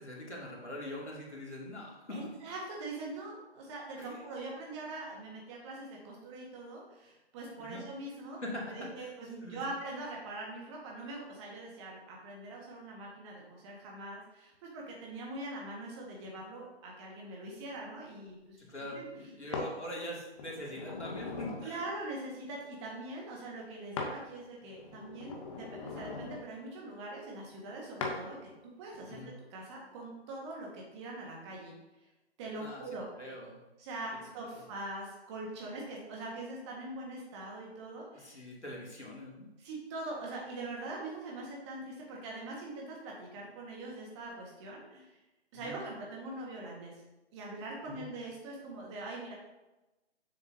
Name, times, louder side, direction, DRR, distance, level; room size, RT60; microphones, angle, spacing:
voice 1, 0.0-2.3 4.0-4.3 7.6-7.8 8.4-9.1 9.4-9.6 18.6-21.9 29.1-29.3 32.5-32.8 33.2-33.6 34.5-34.6 38.1-39.5 45.5-45.8 47.8-48.1, left 1 dB, 90° left, -4 dB, 2.5 m, -43 dB
voice 2, 2.1-8.4 8.7-19.0 19.4-19.6 21.6-28.5 28.8-29.2 29.5-31.7 32.4-33.1 33.8-38.4 39.6-45.2 45.5-47.0 47.3-49.3, right 2 dB, 25° right, -2 dB, 1.7 m, -43 dB
sound 1, 19.5-19.7 20.4-21.7 24.0-24.2 24.6-26.4 28.0-28.2 28.9-29.2, left 3 dB, 30° left, 0.8 m, -40 dB
7.1 x 6.6 x 2.8 m, 1.0 s
figure-of-eight pair, 140°, 33 cm